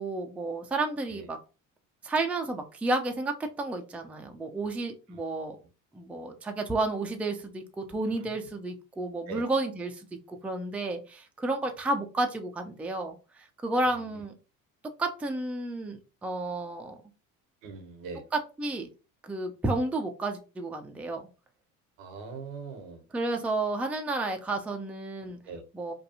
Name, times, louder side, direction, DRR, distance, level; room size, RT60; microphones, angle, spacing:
voice 1, 0.0-1.4 2.0-5.6 5.9-14.3 15.0-17.0 18.3-18.9 19.2-21.3 23.1-25.4 25.7-25.9, right 2 dB, 5° right, 4 dB, 0.4 m, -31 dB
voice 2, 13.9-14.2 17.6-18.2 22.0-23.0 25.4-25.6, right 4 dB, 75° right, 7 dB, 0.8 m, -41 dB
2.6 x 2.3 x 2.6 m, 0.32 s
hypercardioid pair, 65°, 41 cm